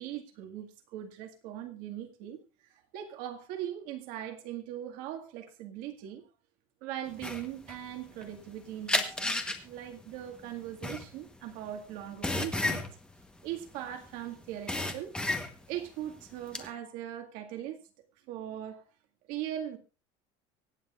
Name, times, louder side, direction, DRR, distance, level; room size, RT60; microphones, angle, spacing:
voice 1, 0.0-2.4 2.7-6.2 6.8-9.4 9.6-12.9 13.4-15.2 15.7-17.8 18.3-18.9 19.3-19.8, right 11 dB, 65° right, 2.0 m, -40 dB
sound 1, 7.2-8.5 8.9-14.1 14.4-15.8 16.2-16.7, left 2 dB, 5° left, 1.1 m, -32 dB
24.5 x 8.9 x 2.5 m
cardioid pair, 150°, 15 cm